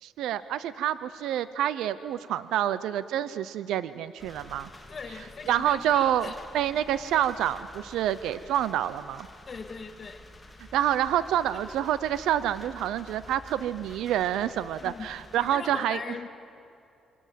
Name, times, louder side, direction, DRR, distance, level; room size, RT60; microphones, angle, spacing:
voice 1, 0.0-4.7 5.5-9.3 10.7-16.0, right 11 dB, 85° right, 15 dB, 0.7 m, -27 dB
sound 1, 4.2-15.6, left 1 dB, 15° left, 2.8 m, -49 dB
voice 2, 4.9-6.4 9.5-10.3 14.8-15.1 15.4-16.3, left 5 dB, 40° left, 7 dB, 2.1 m, -40 dB
28.0 x 24.0 x 7.7 m, 2.6 s
cardioid pair, 90°, 0 cm